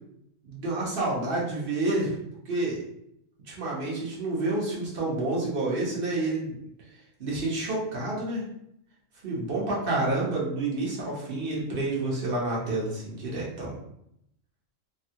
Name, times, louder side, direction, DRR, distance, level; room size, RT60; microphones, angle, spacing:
voice 1, 0.4-2.2 2.5-2.8 3.5-6.5 7.2-8.5 9.2-13.7, right 2 dB, 45° right, -4 dB, 1.0 m, -29 dB
3.2 x 2.3 x 2.8 m, 0.76 s
omnidirectional pair, 1.4 m